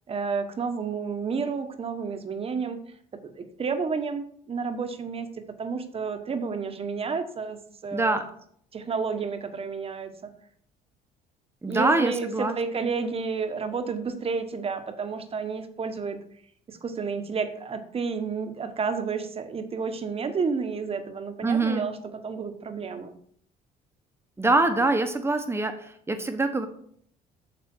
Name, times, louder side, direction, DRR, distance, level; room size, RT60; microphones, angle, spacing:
voice 1, 0.1-2.8 3.2-5.3 5.6-8.2 8.7-10.3 11.6-16.2 16.7-22.0 22.2-23.1, right 5 dB, 35° right, 8 dB, 1.2 m, -31 dB
voice 2, 7.9-8.2 11.6-12.5 21.4-21.9 24.4-26.7, right 2 dB, 15° right, 7 dB, 1.2 m, -24 dB
8.6 x 6.7 x 4.5 m, 0.64 s
cardioid pair, 110°, 17 cm